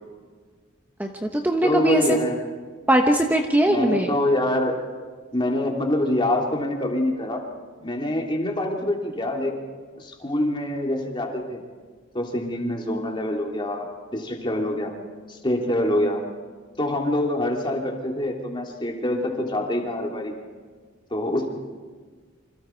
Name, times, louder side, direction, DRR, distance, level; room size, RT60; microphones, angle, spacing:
voice 1, 1.0-2.2 2.9-4.1, right 1 dB, 10° right, 3 dB, 1.1 m, -20 dB
voice 2, 1.6-2.4 3.7-4.7 5.3-7.4 7.8-9.5 10.0-11.6 12.1-14.9 15.3-16.2 16.8-20.3 21.1-21.5, left 1 dB, 25° left, 0 dB, 3.2 m, -25 dB
28.0 x 26.0 x 4.7 m, 1.5 s
head